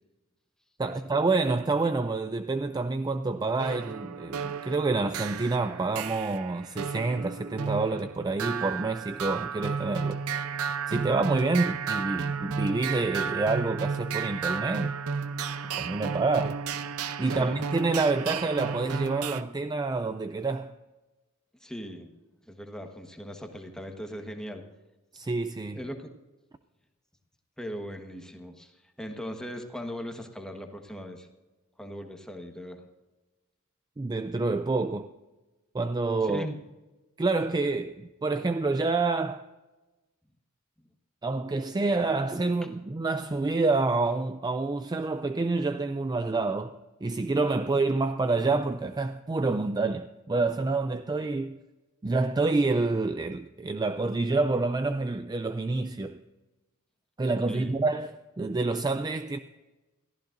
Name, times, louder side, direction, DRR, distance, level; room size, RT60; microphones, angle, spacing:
voice 1, 0.8-10.2 10.9-15.0 15.8-16.6 17.2-20.7 25.1-25.8 34.0-35.1 35.7-36.5 37.2-39.4 41.2-51.6 52.0-56.2 57.2-59.4, right 3 dB, 20° right, 0.4 m, -28 dB
sound 1, 3.6-19.4, right 6 dB, 80° right, 0.7 m, -33 dB
voice 2, 17.3-17.7 21.6-22.1 22.4-24.7 25.7-26.1 27.6-31.3 31.8-32.8 36.2-36.6 57.5-57.8, equal, 5° left, 1.3 m, -39 dB
22.0 x 14.5 x 2.6 m
head